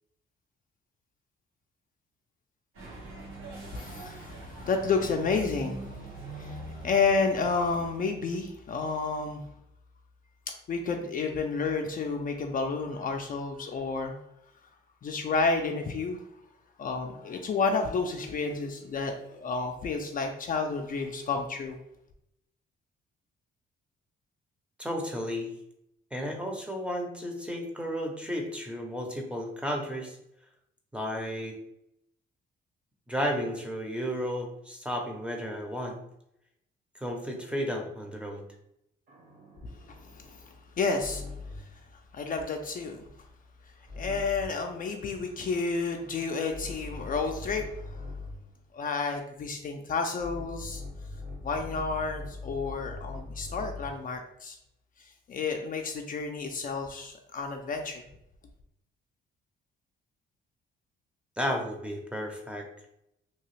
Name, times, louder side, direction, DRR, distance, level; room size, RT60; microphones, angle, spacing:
sound 1, 2.7-7.9, right 2 dB, 90° right, 1.2 m, -43 dB
voice 1, 3.7-9.4 10.7-14.2 15.0-16.2 16.8-21.8 40.0-41.3 41.6-41.7 42.1-43.1 44.0-48.0 48.7-50.8 51.4-54.6 55.0-58.1, left 4 dB, 45° left, 3 dB, 0.4 m, -31 dB
voice 2, 24.8-25.5 26.1-30.2 30.9-31.6 33.1-36.0 36.9-38.5 61.4-62.7, equal, 5° right, 1 dB, 0.6 m, -33 dB
sound 2, 39.1-41.8 43.9-44.7 45.5-48.5 50.2-54.1, left 3 dB, 45° right, 1.0 m, -42 dB
2.8 x 2.3 x 3.1 m, 0.80 s
cardioid pair, 90°, 20 cm